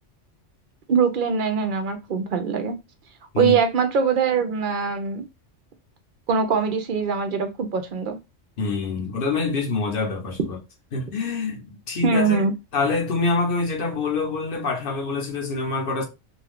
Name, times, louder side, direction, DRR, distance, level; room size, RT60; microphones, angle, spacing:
voice 1, 0.9-2.8 3.4-5.3 6.3-8.2 12.0-12.5, right 5 dB, 60° right, 0.6 m, -22 dB
voice 2, 8.6-10.6 10.9-12.4 12.7-16.0, left 3 dB, 50° left, 1.0 m, -25 dB
2.6 x 2.3 x 3.4 m
omnidirectional pair, 1.2 m